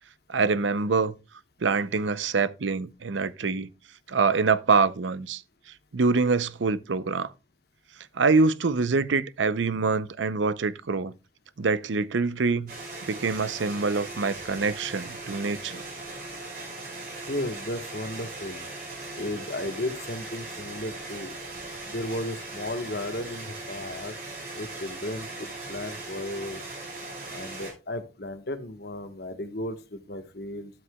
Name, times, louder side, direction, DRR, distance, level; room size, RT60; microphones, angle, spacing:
voice 1, 0.3-1.1 1.6-3.7 4.1-5.4 5.9-7.3 8.1-11.1 11.6-12.7 13.1-15.8, right 4 dB, 80° right, 0.6 m, -25 dB
sound 1, 12.7-27.7, right 2 dB, 50° right, 5.1 m, -39 dB
voice 2, 17.3-18.6 19.2-21.4 21.9-24.1 24.5-26.6 27.3-30.7, left 1 dB, 55° left, 1.3 m, -34 dB
12.5 x 8.0 x 2.3 m
head